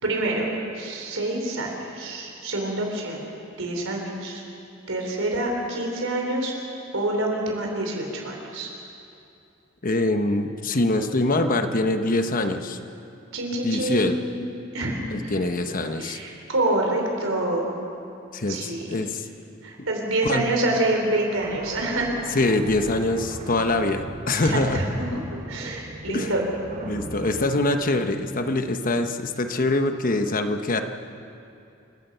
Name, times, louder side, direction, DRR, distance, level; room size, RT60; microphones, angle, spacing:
voice 1, 0.0-3.2 3.6-4.4 4.9-6.5 6.9-8.7 13.3-14.4 14.7-15.3 16.0-17.7 18.5-18.9 19.6-22.1 24.4-25.2 25.5-26.4, right 1 dB, 80° right, 0 dB, 4.5 m, -27 dB
voice 2, 9.8-12.8 13.6-14.2 15.1-16.2 18.3-19.2 20.3-20.4 22.3-24.8 26.1-26.3 26.9-30.8, left 2 dB, 45° left, 7 dB, 1.1 m, -24 dB
sound 1, 21.4-28.8, right 2 dB, 40° right, 1.7 m, -39 dB
28.5 x 16.0 x 5.7 m, 2.6 s
head